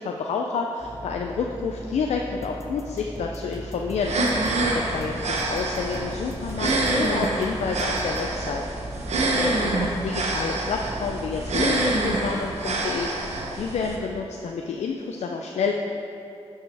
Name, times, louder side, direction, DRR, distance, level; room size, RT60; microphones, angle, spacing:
voice 1, 0.0-4.2 4.7-8.9 9.3-15.7, left 5 dB, 90° left, 1 dB, 0.4 m, -29 dB
sound 1, 0.8-12.3, right 1 dB, 10° right, 1.1 m, -39 dB
sound 2, 2.4-8.3, left 1 dB, 25° left, 1.0 m, -44 dB
sound 3, 4.0-14.0, right 2 dB, 85° right, 0.9 m, -26 dB
11.5 x 5.5 x 3.4 m, 2.8 s
cardioid pair, 60°, 11 cm